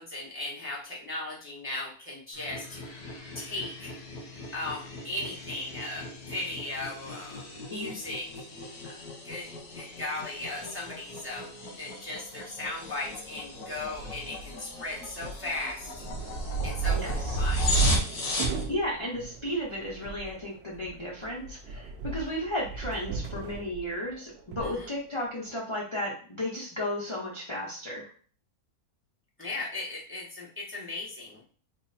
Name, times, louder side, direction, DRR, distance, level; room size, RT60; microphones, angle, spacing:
voice 1, 0.0-3.0 3.3-3.9 4.5-8.3 8.6-8.9 9.2-9.5 9.7-16.0 16.6-17.6 24.6-24.9 29.4-31.4, left 2 dB, 10° right, -5 dB, 0.7 m, -37 dB
sound 1, 2.3-18.6, right 1 dB, 90° left, 1.6 m, -34 dB
sound 2, 12.6-25.6, right 4 dB, 70° right, 0.6 m, -42 dB
voice 2, 16.9-17.4 18.7-28.1, left 1 dB, 30° left, -5 dB, 0.6 m, -34 dB
3.9 x 2.0 x 4.0 m, 0.43 s
omnidirectional pair, 1.6 m